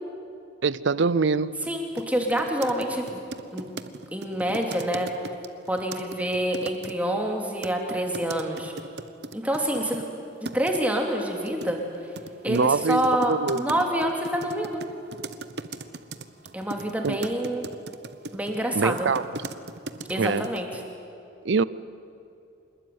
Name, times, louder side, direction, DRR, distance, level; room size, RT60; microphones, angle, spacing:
voice 1, 0.6-1.6 12.5-13.6 17.0-17.2 18.7-19.2 20.2-20.5 21.4-21.6, right 4 dB, 75° right, 0.6 m, -24 dB
sound 1, 1.6-1.7 2.0-6.9 7.6-10.0 10.4-10.8 11.5-20.1 20.4-20.9, right 3 dB, 60° right, 1.0 m, -38 dB
voice 2, 1.7-3.2 3.5-3.6 4.1-5.1 5.7-8.7 9.3-10.0 10.5-11.8 12.4-14.8 16.5-17.7 18.3-19.1 20.1-20.7, right 1 dB, 10° right, 3.0 m, -27 dB
26.5 x 20.5 x 9.5 m
head